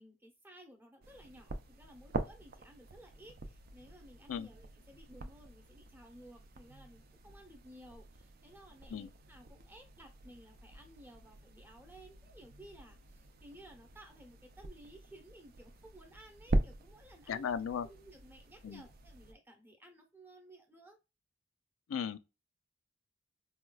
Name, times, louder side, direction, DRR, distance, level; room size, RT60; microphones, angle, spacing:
voice 1, 0.0-17.5 17.9-21.0, right 1 dB, 10° right, 0.8 m, -56 dB
sound 1, 1.0-19.3, right 2 dB, 50° right, 0.4 m, -43 dB
voice 2, 17.3-17.9 18.6-18.8 21.9-22.2, left 7 dB, 90° left, 0.3 m, -36 dB
4.2 x 2.3 x 2.2 m
head